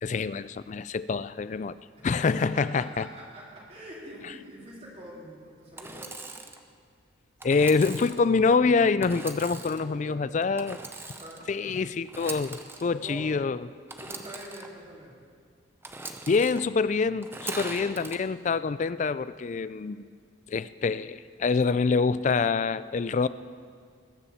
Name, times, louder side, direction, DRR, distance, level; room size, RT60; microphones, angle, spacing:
voice 1, 0.0-1.8 2.0-3.1 7.4-10.8 11.5-13.7 16.3-20.0 20.5-23.3, left 4 dB, 35° left, 16 dB, 0.3 m, -26 dB
voice 2, 2.0-6.3 9.5-10.5 11.0-11.4 12.9-13.3 14.0-15.2 17.6-18.0, equal, 30° right, -5 dB, 3.7 m, -45 dB
Engine / Sawing, 5.8-6.6 7.4-8.2 9.0-9.8 10.6-11.4 12.0-12.8 13.9-14.7 15.8-16.6 17.2-18.2, right 3 dB, 10° right, 0.7 m, -40 dB
20.5 x 7.0 x 7.1 m, 2.1 s
head